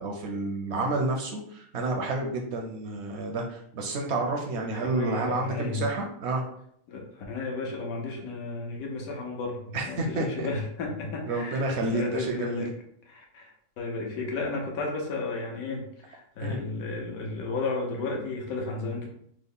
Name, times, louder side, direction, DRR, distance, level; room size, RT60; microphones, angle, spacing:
voice 1, 0.0-6.4 9.7-10.5 11.3-12.7 16.4-16.6, right 2 dB, 65° right, 1 dB, 0.7 m, -30 dB
voice 2, 4.6-5.8 6.9-12.7 13.1-19.1, left 3 dB, 80° left, 0 dB, 1.2 m, -33 dB
3.5 x 2.1 x 3.5 m, 0.67 s
omnidirectional pair, 1.5 m